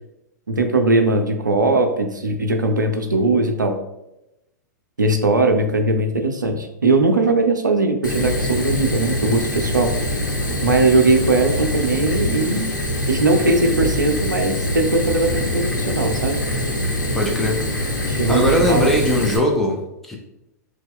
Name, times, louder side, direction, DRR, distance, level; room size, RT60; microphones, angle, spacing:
voice 1, 0.5-3.7 5.0-9.9 10.6-12.7 13.1-16.4 18.1-18.9, right 2 dB, 85° right, 5 dB, 0.4 m, -19 dB
Fire, 8.0-19.4, left 1 dB, 90° left, 0.6 m, -24 dB
voice 2, 17.1-17.8 18.3-20.2, equal, ahead, 0 dB, 0.5 m, -20 dB
3.0 x 2.1 x 3.5 m, 0.89 s
figure-of-eight pair, 105°, 10 cm